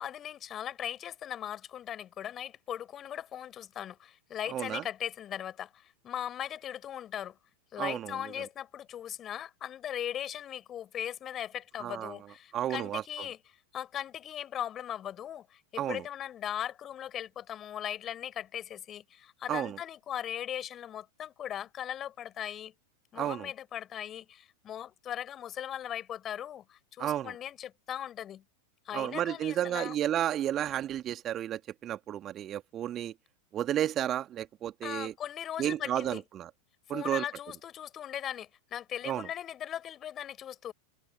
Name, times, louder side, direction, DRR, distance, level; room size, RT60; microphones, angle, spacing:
voice 1, 0.0-7.4 7.7-13.4 13.7-22.7 23.1-28.4 28.9-30.0 34.8-36.2 36.9-40.7, left 10 dB, 30° left, 5.3 m, -39 dB
voice 2, 4.5-4.8 7.8-8.2 11.8-12.2 12.5-13.0 15.8-16.0 19.5-19.8 23.2-23.5 27.0-27.3 28.9-33.1 33.5-35.1 35.6-36.5 36.9-37.2 39.0-39.3, right 11 dB, 30° right, 1.9 m, -32 dB
figure-of-eight pair, 90°, 0 cm